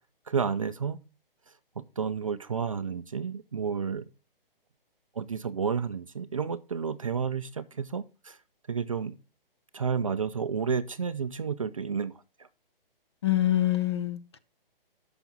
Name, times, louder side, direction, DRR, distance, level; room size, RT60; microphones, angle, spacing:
voice 1, 0.3-1.0 1.5-4.0 5.1-8.4 8.7-9.2 9.7-12.1 12.4-12.5, right 6 dB, 35° right, 0.4 m, -31 dB
voice 2, 13.2-14.4, left 13 dB, 30° left, 0.6 m, -25 dB
12.0 x 5.9 x 3.9 m
hypercardioid pair, 165°, 29 cm